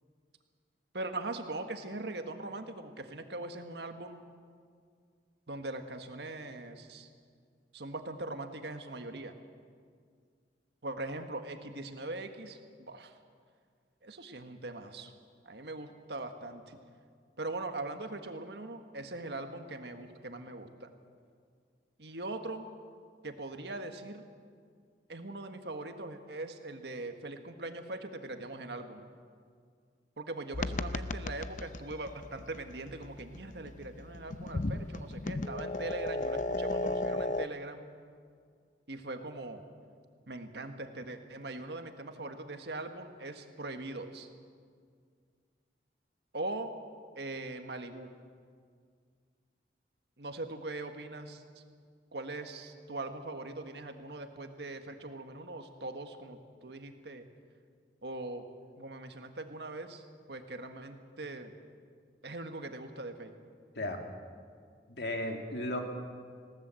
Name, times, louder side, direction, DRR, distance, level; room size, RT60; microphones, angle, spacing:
voice 1, 0.9-4.2 5.5-7.1 7.7-9.4 10.8-13.2 14.0-15.1 15.4-16.8 17.4-20.9 22.0-22.7 23.2-24.2 25.1-29.0 30.2-37.8 38.9-39.6 40.3-44.3 46.3-46.7 47.1-48.1 50.2-51.6 52.1-57.2 58.0-58.4 58.8-61.5 62.2-63.4, right 2 dB, 75° right, 6 dB, 1.6 m, -41 dB
sound 1, 30.5-37.5, left 2 dB, 45° left, 0.6 m, -36 dB
voice 2, 64.9-65.8, left 1 dB, 70° left, 3 dB, 2.4 m, -35 dB
20.5 x 17.0 x 7.7 m, 2.1 s
head